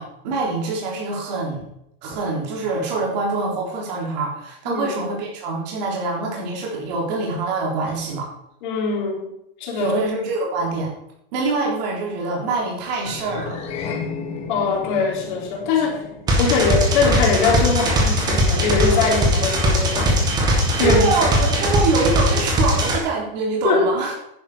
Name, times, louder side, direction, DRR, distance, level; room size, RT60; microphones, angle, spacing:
voice 1, 0.0-1.6 2.0-8.3 9.7-10.9 11.3-13.6 20.8-24.1, right 3 dB, 45° right, -2 dB, 3.8 m, -24 dB
voice 2, 8.6-9.3 9.6-9.9 14.5-16.0 16.4-20.2 20.8-21.1 23.6-23.8, left 5 dB, 55° left, 0 dB, 3.7 m, -21 dB
sound 1, 13.0-17.6, left 5 dB, 20° left, 1.5 m, -34 dB
sound 2, 16.3-23.0, equal, 15° right, 1.7 m, -19 dB
10.5 x 9.9 x 4.9 m, 0.77 s
supercardioid pair, 175°, 29 cm